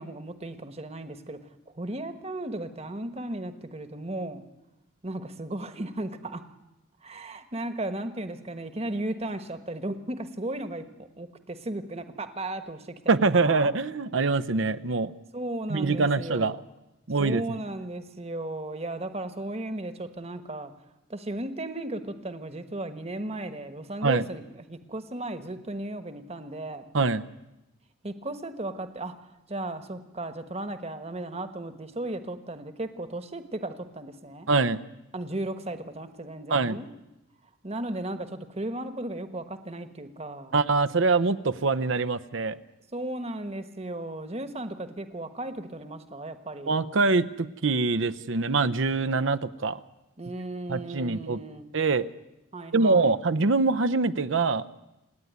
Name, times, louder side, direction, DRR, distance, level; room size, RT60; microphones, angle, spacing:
voice 1, 0.0-1.4 1.7-4.4 5.0-6.4 7.0-13.7 15.3-16.5 17.2-20.7 21.1-26.9 28.0-29.1 29.5-34.5 35.1-36.9 37.6-40.5 42.9-46.8 50.2-51.7 52.5-53.1, right 1 dB, 30° right, 9 dB, 1.3 m, -35 dB
voice 2, 13.1-15.1 15.7-16.6 17.1-17.4 24.0-24.2 26.9-27.2 34.5-34.8 36.5-36.8 40.5-42.6 46.7-49.8 50.7-51.4 51.7-52.1 52.7-54.7, right 3 dB, 70° right, 11 dB, 0.8 m, -24 dB
28.0 x 9.7 x 9.4 m, 0.95 s
head